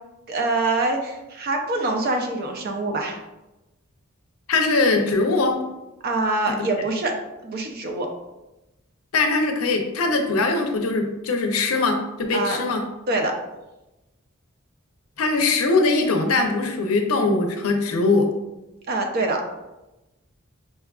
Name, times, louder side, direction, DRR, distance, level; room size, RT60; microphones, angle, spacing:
voice 1, 0.3-3.2 6.0-7.2 7.4-8.1 12.3-12.6 13.1-13.3 18.9-19.4, right 2 dB, 45° right, 3 dB, 0.5 m, -24 dB
voice 2, 4.5-5.6 6.5-6.7 9.1-12.9 15.2-18.3, left 3 dB, 90° left, 4 dB, 0.6 m, -21 dB
5.4 x 2.4 x 2.3 m, 0.99 s
head